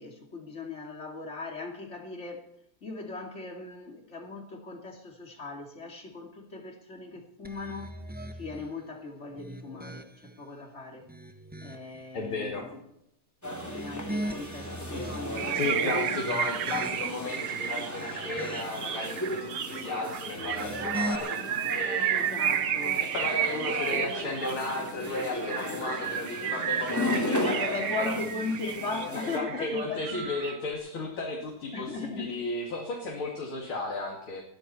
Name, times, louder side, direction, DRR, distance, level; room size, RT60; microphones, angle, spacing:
voice 1, 0.0-2.5 2.8-8.0 8.4-11.1 11.6-12.8 13.7-16.2 16.7-17.0 22.1-23.0 23.7-24.3 27.4-30.3 31.7-32.4, left 3 dB, 35° left, 2 dB, 2.8 m, -38 dB
sound 1, 7.4-8.7 9.3-10.4 10.9-12.0 13.5-15.6 16.1-17.3 17.8-18.9 20.4-21.2, right 1 dB, 15° right, 0.3 m, -40 dB
voice 2, 12.1-12.7 15.5-22.3 23.1-28.2 29.1-34.4, left 2 dB, 85° left, -1 dB, 3.6 m, -34 dB
sound 2, 13.4-29.4, left 1 dB, 10° left, 3.0 m, -35 dB
sound 3, 15.4-30.7, right 9 dB, 70° right, 1.6 m, -32 dB
20.5 x 14.0 x 4.4 m, 0.77 s
omnidirectional pair, 2.2 m